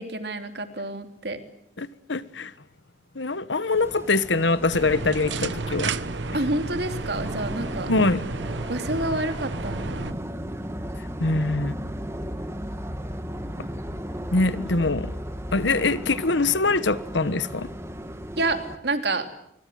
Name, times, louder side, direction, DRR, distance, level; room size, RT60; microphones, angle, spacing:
voice 1, 0.0-1.4 6.3-7.9 8.7-10.1 18.4-19.3, right 2 dB, 60° right, 3.2 m, -28 dB
voice 2, 1.8-2.5 3.1-5.9 7.9-8.2 11.2-11.7 14.3-15.1 15.5-17.7, left 3 dB, 75° left, 1.4 m, -23 dB
sound 1, 3.7-18.8, equal, 15° right, 2.0 m, -36 dB
sound 2, 4.7-10.1, right 3 dB, 75° right, 1.1 m, -32 dB
25.0 x 24.5 x 9.3 m
head